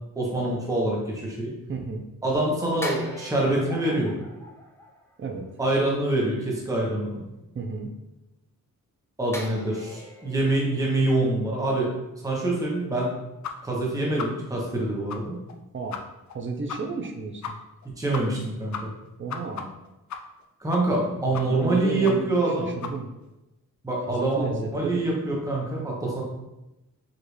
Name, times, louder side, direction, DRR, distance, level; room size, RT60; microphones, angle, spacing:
voice 1, 0.2-1.5 2.2-4.1 5.6-7.2 9.2-11.9 12.2-13.1 13.6-15.4 18.0-18.8 20.6-22.7 23.8-26.2, right 2 dB, 10° right, -3 dB, 0.9 m, -25 dB
voice 2, 1.7-2.1 5.2-5.5 7.5-7.9 15.7-16.0 16.3-17.6 19.2-19.7 20.9-23.1 24.1-25.0, right 4 dB, 35° right, 3 dB, 0.6 m, -33 dB
sound 1, 2.8-5.5 9.3-12.5 12.8-13.0, equal, 10° left, 0.6 m, -41 dB
sound 2, 13.4-13.5 13.8-13.9 14.2-14.3 14.7-14.8 15.1-15.2 15.5-15.6 15.9-16.0 16.3-16.4 16.7-16.8 17.0-17.1 17.4-17.5 17.8-17.9 18.1-18.5 18.7-20.4 20.7-21.1 21.3-21.7 22.0-22.2 22.4-22.5 22.8-22.9, left 7 dB, 55° left, 0.5 m, -34 dB
5.0 x 2.5 x 3.1 m, 0.94 s
wide cardioid pair, 95°, 34 cm